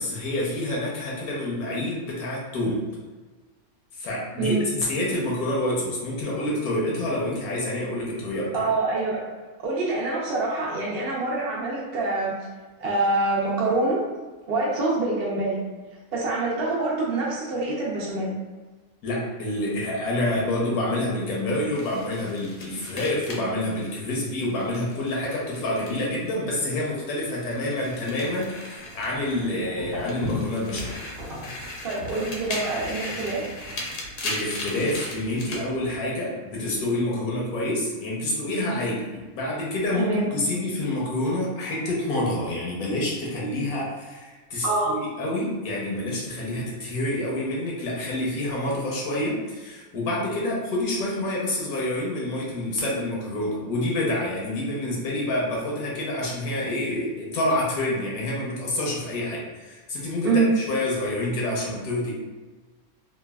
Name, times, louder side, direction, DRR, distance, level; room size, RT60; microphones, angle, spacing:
voice 1, 0.0-2.8 4.0-8.7 19.0-31.0 34.2-60.3 60.6-62.1, left 1 dB, 80° left, -4 dB, 1.2 m, -27 dB
voice 2, 8.5-9.2 9.6-12.4 12.8-14.0 14.5-15.6 16.1-18.3 31.8-33.5 39.9-40.3 44.6-44.9 60.2-60.5, right 3 dB, 65° right, -5 dB, 0.6 m, -25 dB
sound 1, 21.7-26.3 26.6-29.6 29.9-35.6, left 2 dB, 65° left, 0.8 m, -37 dB
sound 2, 28.8-36.0, left 1 dB, 50° right, 1.1 m, -39 dB
3.2 x 2.1 x 2.2 m, 1.3 s
omnidirectional pair, 1.6 m